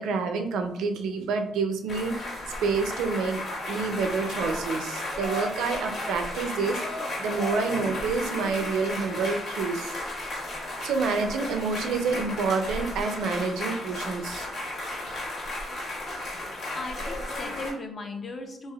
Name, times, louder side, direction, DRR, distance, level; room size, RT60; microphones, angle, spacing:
voice 1, 0.0-2.2 2.6-3.4 3.7-6.8 7.2-9.9 10.8-14.5, right 4 dB, 85° right, 6 dB, 0.4 m, -28 dB
sound 1, 1.9-17.7, left 1 dB, 65° left, 1.2 m, -34 dB
voice 2, 16.7-18.7, left 2 dB, 40° left, 4 dB, 0.5 m, -37 dB
3.3 x 2.5 x 2.3 m, 0.77 s
cardioid pair, 90°, 0 cm